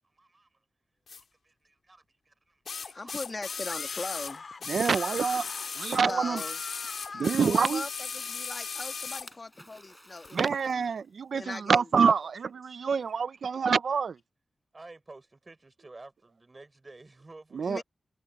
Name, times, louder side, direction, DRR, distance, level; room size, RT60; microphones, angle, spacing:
voice 1, 0.1-0.6 1.1-3.2 3.4-3.6 3.9-4.0 6.9-7.4 12.7-13.6 14.7-17.8, right 2 dB, 30° right, 6.0 m, -53 dB
sound 1, 1.1-1.2 2.7-6.0 6.3-9.3 10.2-10.3, left 5 dB, 80° left, 2.4 m, -37 dB
voice 2, 2.9-4.4 6.1-6.6 7.1-10.8 11.4-11.9 17.7-17.8, left 3 dB, 35° left, 1.8 m, -39 dB
Screaming, 3.7-7.6, left 4 dB, 50° left, 4.4 m, -43 dB
Splash splatter, 4.3-7.5 9.3-11.2, equal, ahead, 5.4 m, -49 dB
voice 3, 4.7-5.4 5.8-6.4 7.2-7.8 10.3-14.1 17.6-17.8, right 6 dB, 80° right, 0.4 m, -26 dB
wide cardioid pair, 130°, 0 cm